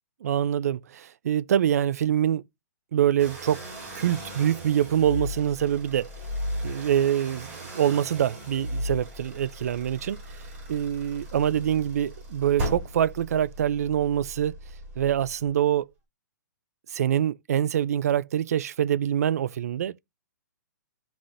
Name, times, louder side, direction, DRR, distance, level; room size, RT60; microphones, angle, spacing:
voice 1, 0.2-2.4 2.9-3.6 3.9-6.1 6.6-14.5 15.0-15.9 16.9-20.0, right 10 dB, 55° right, 0.4 m, -25 dB
sound 1, 3.2-15.6, equal, 25° right, 5.3 m, -37 dB
11.0 x 4.0 x 2.5 m
hypercardioid pair, 170°, 10 cm